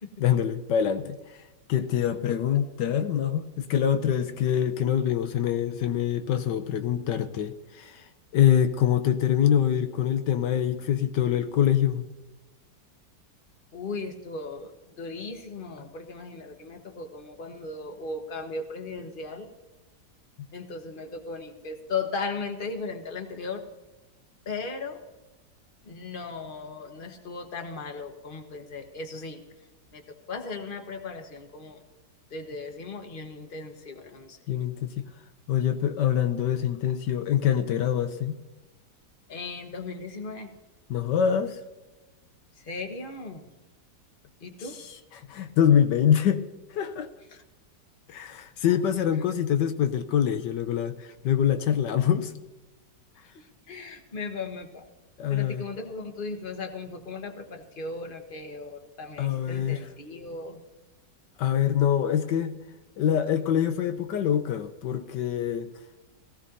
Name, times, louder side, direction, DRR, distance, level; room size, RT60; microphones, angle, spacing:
voice 1, 0.2-1.4 1.7-8.1 8.3-12.1 34.5-35.1 35.5-38.3 40.9-41.6 45.1-46.4 46.7-47.1 48.1-52.3 55.2-55.6 59.2-59.8 61.4-62.5 63.0-65.7, left 9 dB, 80° left, 9 dB, 1.4 m, -25 dB
voice 2, 13.7-19.5 20.5-23.6 24.4-25.0 25.8-29.4 29.9-30.0 30.3-31.8 32.3-34.4 39.3-40.6 42.6-43.5 44.4-44.8 47.3-47.4 48.6-48.8 53.3-54.8 55.3-60.6, left 4 dB, 30° left, 5 dB, 1.4 m, -37 dB
18.0 x 16.0 x 2.7 m, 1.1 s
omnidirectional pair, 1.9 m